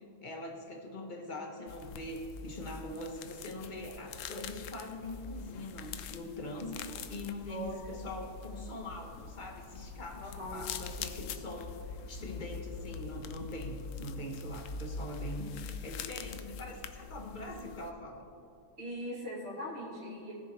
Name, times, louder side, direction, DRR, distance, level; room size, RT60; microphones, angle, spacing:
voice 1, 0.0-18.3, left 1 dB, 35° left, 2 dB, 1.1 m, -43 dB
sound 1, 1.7-17.9, left 5 dB, 65° left, 0.8 m, -44 dB
voice 2, 7.5-8.0 10.2-10.6 18.8-20.3, equal, 45° right, -7 dB, 3.1 m, -40 dB
18.0 x 7.0 x 3.2 m, 2.5 s
omnidirectional pair, 1.7 m